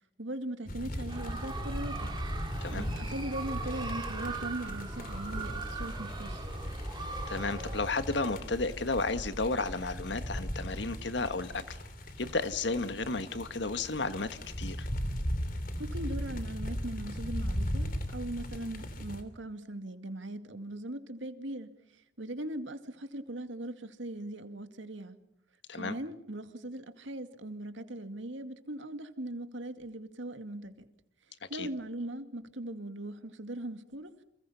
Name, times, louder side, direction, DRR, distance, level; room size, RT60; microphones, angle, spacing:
voice 1, 0.2-2.1 2.7-6.5 15.8-25.1 25.7-30.7 31.5-34.1, right 1 dB, 85° right, 2.2 m, -40 dB
sound 1, 0.7-19.2, equal, 45° left, 3.1 m, -38 dB
sound 2, 1.1-7.8, right 2 dB, 25° right, 3.0 m, -39 dB
voice 2, 7.3-11.8 12.2-14.9 25.7-26.0 31.5-31.7, left 3 dB, 70° left, 1.6 m, -33 dB
30.0 x 27.5 x 5.7 m
head